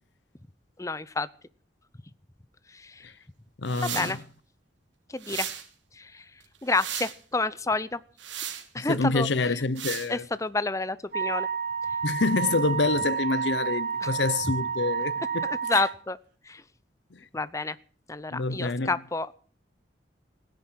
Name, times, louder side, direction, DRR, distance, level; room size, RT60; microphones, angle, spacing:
voice 1, 0.8-1.3 2.7-3.0 3.8-4.2 5.1-5.5 6.0-6.2 6.6-8.0 8.7-9.6 10.1-11.5 14.0-14.1 15.4-16.2 16.5-16.6 17.3-17.8 18.1-19.3, left 3 dB, 15° left, 0.7 m, -29 dB
voice 2, 3.6-4.2 8.8-10.2 12.0-15.8 17.1-17.2 18.3-18.9, left 3 dB, 75° left, 0.8 m, -27 dB
Hard Sweeping, 3.7-4.2 5.2-5.7 6.4-7.2 8.2-8.6 9.8-10.1, right 10 dB, 85° right, 2.8 m, -35 dB
Wind instrument woodwind instrument, 11.1-15.9, right 6 dB, 50° right, 3.2 m, -30 dB
17.0 x 10.5 x 7.5 m
head